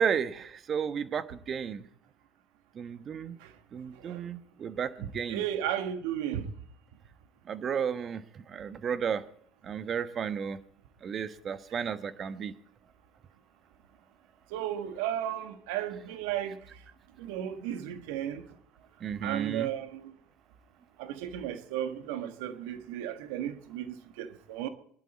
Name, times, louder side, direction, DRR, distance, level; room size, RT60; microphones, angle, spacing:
voice 1, 0.0-1.8 2.7-3.4 3.7-5.4 7.5-9.2 9.6-10.6 11.0-12.5 19.0-19.7, right 7 dB, 45° right, 1.2 m, -33 dB
voice 2, 5.3-6.5 14.5-16.6 17.2-18.4 19.2-20.1 21.0-24.7, right 11 dB, 75° right, 1.5 m, -34 dB
21.5 x 11.5 x 4.3 m
hypercardioid pair, 75°, 0 cm